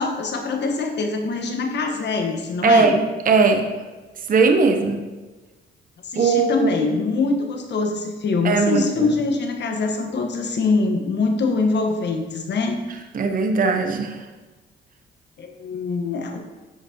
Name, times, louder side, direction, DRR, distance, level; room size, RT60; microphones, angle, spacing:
voice 1, 0.0-3.0 6.0-12.8 15.4-16.4, left 3 dB, 60° left, 3 dB, 1.3 m, -23 dB
voice 2, 2.6-3.6 4.3-5.0 6.2-6.9 8.4-9.2 13.1-14.2, right 4 dB, 45° right, 4 dB, 0.9 m, -19 dB
10.5 x 5.9 x 2.9 m, 1.2 s
cardioid pair, 90°, 20 cm